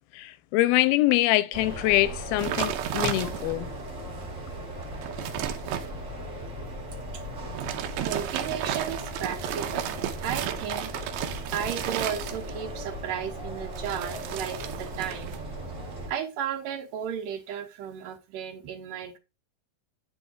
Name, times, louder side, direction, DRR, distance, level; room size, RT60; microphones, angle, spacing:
voice 1, 0.1-3.7, left 17 dB, 85° left, 2.4 m, -24 dB
sound 1, 1.5-16.1, right 1 dB, 30° right, 1.4 m, -37 dB
sound 2, 2.4-3.7 4.2-4.3 4.7-5.9 7.4-12.7 13.7-15.4 15.7-16.1, right 10 dB, 90° right, 2.7 m, -33 dB
voice 2, 8.0-9.9 10.2-10.9 11.5-15.4 16.1-19.2, right 8 dB, 70° right, 2.3 m, -34 dB
9.3 x 5.9 x 2.4 m
omnidirectional pair, 4.3 m